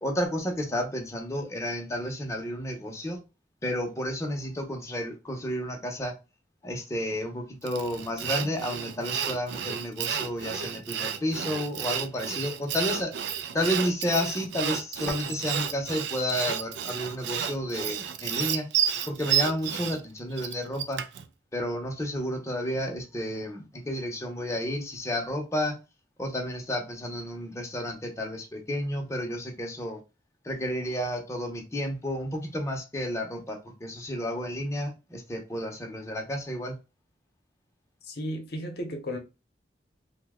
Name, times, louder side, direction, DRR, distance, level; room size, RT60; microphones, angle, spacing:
voice 1, 0.0-3.2 3.6-6.1 6.6-18.7 19.1-21.0 21.5-25.8 26.2-30.0 30.4-36.8, equal, 15° left, 0.7 m, -31 dB
Sawing, 7.7-21.3, right 9 dB, 75° right, 0.3 m, -31 dB
voice 2, 38.0-39.2, equal, 65° left, 0.7 m, -34 dB
2.7 x 2.1 x 3.5 m
head